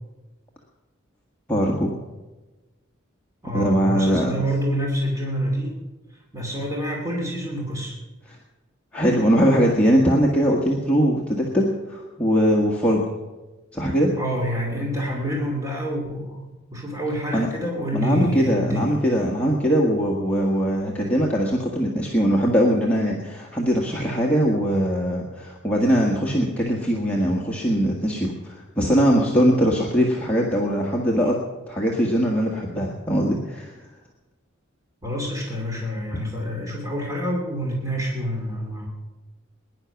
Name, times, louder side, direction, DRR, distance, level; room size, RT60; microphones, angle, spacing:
voice 1, 1.5-2.0 3.5-4.4 8.9-13.0 13.7-14.1 17.3-17.5 17.9-31.4 31.7-33.7, equal, 5° left, -3 dB, 1.6 m, -21 dB
voice 2, 3.4-5.8 6.3-7.9 14.2-19.0 35.0-38.9, equal, 15° right, -2 dB, 2.6 m, -27 dB
21.0 x 11.0 x 5.9 m, 1.2 s
head